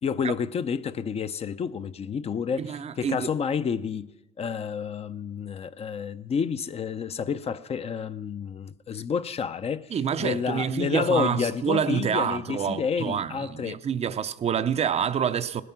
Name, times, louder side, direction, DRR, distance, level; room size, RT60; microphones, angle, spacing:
voice 1, 0.0-4.1 4.4-9.9 10.2-13.8, left 6 dB, 35° left, 0.6 m, -29 dB
voice 2, 2.6-3.3 9.9-15.6, right 8 dB, 40° right, 0.5 m, -27 dB
18.0 x 11.0 x 5.9 m
cardioid pair, 110°, 17 cm